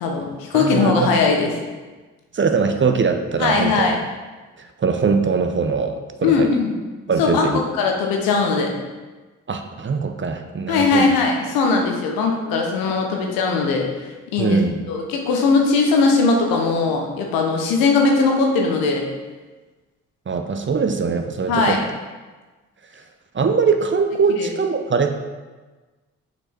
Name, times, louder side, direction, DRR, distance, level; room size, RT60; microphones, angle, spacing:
voice 1, 0.0-1.5 3.4-4.0 6.2-6.7 7.2-8.7 10.7-13.8 14.3-14.6 14.9-19.0 21.5-21.8 24.3-24.5, left 4 dB, 80° left, 1 dB, 1.1 m, -19 dB
voice 2, 0.5-1.1 2.3-4.0 4.8-6.5 7.1-7.6 9.5-11.1 14.4-14.8 20.3-21.8 23.3-25.2, right 5 dB, 35° right, 6 dB, 0.8 m, -21 dB
6.1 x 5.2 x 4.4 m, 1.3 s
hypercardioid pair, 40°, 35 cm